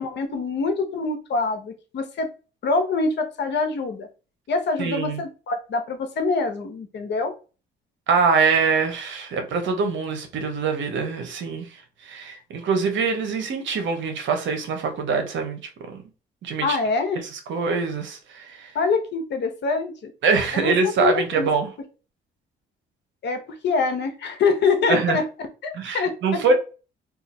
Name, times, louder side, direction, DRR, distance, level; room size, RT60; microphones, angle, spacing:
voice 1, 0.0-2.3 2.6-4.1 4.5-7.3 16.6-17.2 18.7-20.1 20.5-21.5 23.2-26.4, left 4 dB, 60° left, 0.8 m, -25 dB
voice 2, 4.8-5.2 8.1-11.7 12.0-16.0 16.4-16.8 17.5-18.7 20.2-21.7 24.9-25.2 25.7-26.5, right 5 dB, 70° right, 0.9 m, -24 dB
2.7 x 2.4 x 4.1 m
cardioid pair, 90°, 20 cm